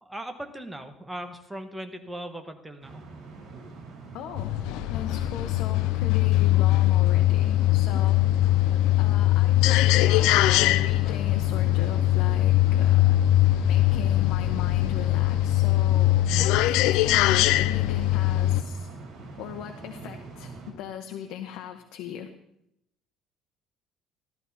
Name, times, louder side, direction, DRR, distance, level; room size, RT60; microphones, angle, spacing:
voice 1, 0.0-3.0 16.3-16.5, right 1 dB, 5° right, 6 dB, 1.2 m, -38 dB
sound 1, 2.8-20.7, right 3 dB, 60° right, 4.0 m, -43 dB
voice 2, 4.1-4.5 4.9-8.2 9.0-13.2 13.6-18.9 19.4-22.3, left 10 dB, 70° left, 5 dB, 0.9 m, -38 dB
sound 2, 4.4-18.6, left 15 dB, 90° left, 0.4 m, -21 dB
13.5 x 12.5 x 4.2 m, 0.80 s
cardioid pair, 145°, 0 cm